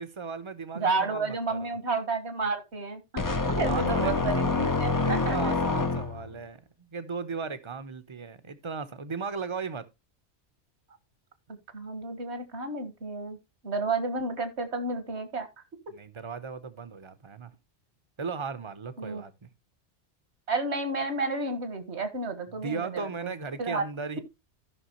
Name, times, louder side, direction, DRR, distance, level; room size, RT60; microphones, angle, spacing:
voice 1, 0.0-1.7 3.2-4.2 5.0-9.9 15.9-17.5 18.2-19.3 22.5-24.2, right 5 dB, 30° right, 0.8 m, -37 dB
voice 2, 0.8-3.2 3.6-5.5 11.7-13.4 13.6-15.5 19.0-19.2 20.5-23.3 23.6-23.8, right 3 dB, 70° right, 1.9 m, -31 dB
sound 1, 3.2-6.4, left 3 dB, 25° left, 0.6 m, -27 dB
14.5 x 6.0 x 3.0 m
omnidirectional pair, 1.2 m